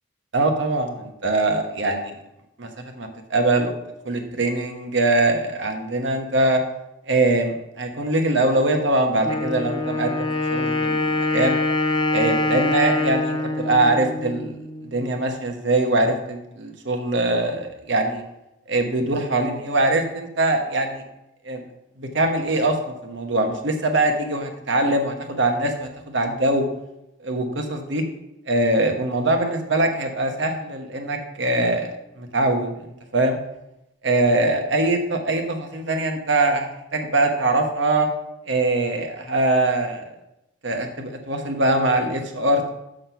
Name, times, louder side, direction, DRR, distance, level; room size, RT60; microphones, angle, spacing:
voice 1, 0.3-2.1 2.6-3.7 4.0-6.6 7.1-11.6 12.1-14.6 14.8-18.2 18.7-21.0 21.4-21.6 22.0-26.6 27.2-28.0 28.5-33.4 34.0-36.7 36.9-38.1 38.5-40.1 40.6-42.7, right 2 dB, 65° right, 4 dB, 1.1 m, -22 dB
Wind instrument woodwind instrument, 9.2-15.0, left 2 dB, 25° left, 0.6 m, -24 dB
6.4 x 6.0 x 5.6 m, 0.88 s
head